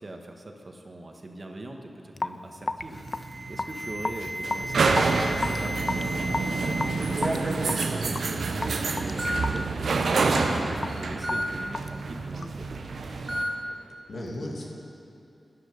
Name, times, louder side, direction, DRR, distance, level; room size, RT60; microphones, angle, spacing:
voice 1, 0.0-8.3 8.8-12.7, right 1 dB, 50° right, 3 dB, 1.4 m, -41 dB
Raindrop / Drip, 2.1-12.7, left 3 dB, 45° left, 0.4 m, -35 dB
sound 1, 2.8-13.4, right 4 dB, 85° right, 0.7 m, -28 dB
Alarm, 2.9-6.9 7.2-7.6 8.5-8.6 9.2-9.4 11.2-11.4 13.3-13.5, equal, 25° right, 1.7 m, -33 dB
voice 2, 13.2-13.8 14.1-14.7, left 1 dB, 75° left, -2 dB, 2.2 m, -37 dB
13.0 x 10.0 x 5.3 m, 2.6 s
cardioid pair, 45°, 0 cm